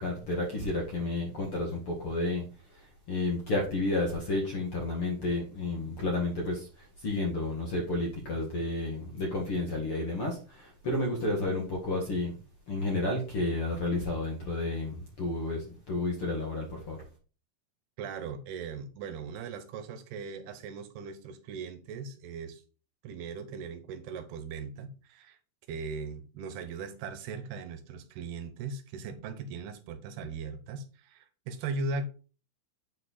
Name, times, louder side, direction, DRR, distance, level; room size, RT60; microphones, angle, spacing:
voice 1, 0.0-12.4 12.7-17.0, left 2 dB, 55° left, 1.6 m, -31 dB
voice 2, 18.0-22.6 23.0-25.4 25.7-32.1, right 4 dB, 75° right, 2.8 m, -39 dB
8.7 x 4.9 x 4.1 m
omnidirectional pair, 4.9 m